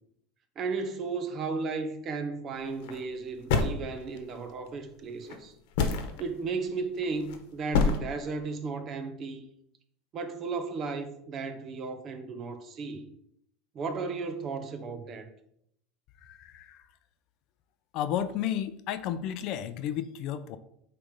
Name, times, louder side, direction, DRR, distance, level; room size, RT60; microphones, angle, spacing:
voice 1, 0.5-5.5 6.2-9.4 10.1-13.1 13.7-15.3, right 4 dB, 35° right, 1.0 m, -34 dB
sound 1, 2.7-3.0 3.5-4.4 5.3-5.4 5.7-6.2 7.0-7.4 7.7-8.0, left 5 dB, 70° left, 1.2 m, -26 dB
voice 2, 16.2-16.8 17.9-20.6, left 10 dB, 50° left, 0.5 m, -32 dB
8.8 x 3.4 x 5.3 m
supercardioid pair, 145°, 0 cm